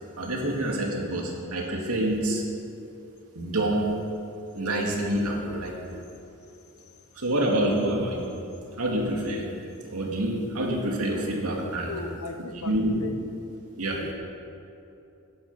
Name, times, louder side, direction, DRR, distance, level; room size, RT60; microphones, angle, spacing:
voice 1, 0.2-2.4 3.3-4.0 4.6-6.0 7.1-8.3 8.8-9.4 9.9-12.0 12.6-13.0 13.8-14.0, right 1 dB, 85° right, 0 dB, 2.2 m, -27 dB
voice 2, 11.9-13.2 14.0-14.1, left 2 dB, 75° left, 7 dB, 1.0 m, -37 dB
13.0 x 10.5 x 5.5 m, 2.8 s
head